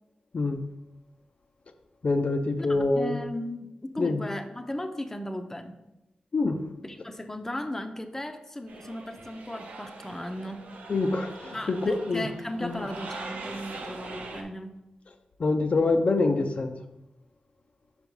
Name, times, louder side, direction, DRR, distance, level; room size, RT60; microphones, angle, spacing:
voice 1, 2.0-3.2 4.0-4.2 6.3-6.6 10.9-12.3 12.6-12.7 15.4-16.8, left 3 dB, 50° left, 5 dB, 0.5 m, -25 dB
voice 2, 2.6-5.8 6.8-10.7 11.5-14.8, left 1 dB, 15° left, 6 dB, 0.6 m, -36 dB
sound 1, 8.7-14.4, right 3 dB, 80° right, 0.8 m, -42 dB
5.3 x 4.7 x 4.6 m, 0.91 s
cardioid pair, 60°, 3 cm